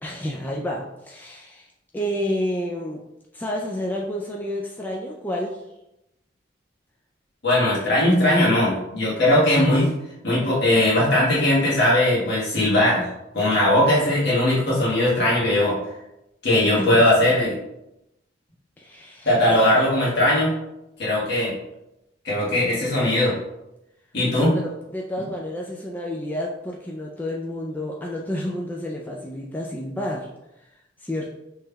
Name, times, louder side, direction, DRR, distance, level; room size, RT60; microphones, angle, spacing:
voice 1, 0.0-3.0 3.3-5.6 16.8-17.1 18.8-19.6 24.3-30.3 30.6-30.7 31.0-31.3, left 1 dB, 10° left, -2 dB, 0.3 m, -30 dB
voice 2, 7.4-9.9 10.2-13.1 13.3-15.7 16.4-17.5 19.2-20.5 21.0-21.5 22.2-23.3 24.1-24.5, left 1 dB, 60° left, -7 dB, 1.3 m, -19 dB
5.1 x 3.2 x 2.2 m, 0.89 s
head